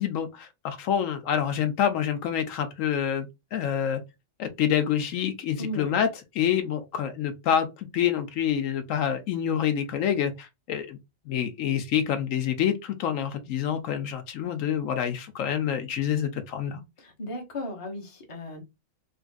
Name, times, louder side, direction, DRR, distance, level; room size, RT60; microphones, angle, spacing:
voice 1, 0.0-4.0 4.4-6.1 6.3-11.0 11.3-16.8, left 9 dB, 80° left, 1.1 m, -27 dB
voice 2, 5.6-6.0 17.0-18.6, left 1 dB, 25° left, 1.0 m, -36 dB
3.6 x 2.5 x 2.3 m
omnidirectional pair, 1.3 m